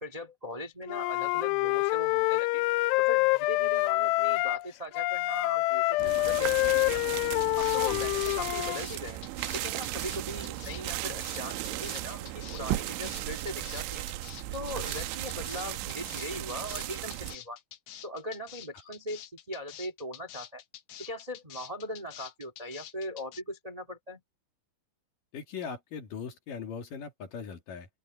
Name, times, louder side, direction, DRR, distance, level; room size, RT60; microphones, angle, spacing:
voice 1, 0.0-2.7 3.0-7.0 7.6-9.2 9.5-14.0 14.5-17.6 18.0-20.6 21.0-24.2, left 1 dB, 25° right, 0.8 m, -40 dB
Wind instrument woodwind instrument, 0.9-4.7 4.9-8.8, left 21 dB, 85° left, 2.5 m, -27 dB
sound 1, 6.0-17.4, right 15 dB, 85° right, 3.3 m, -36 dB
sound 2, 7.3-23.4, left 12 dB, 70° left, 2.8 m, -47 dB
voice 2, 25.3-27.9, left 6 dB, 50° left, 3.4 m, -40 dB
open air
omnidirectional pair, 5.3 m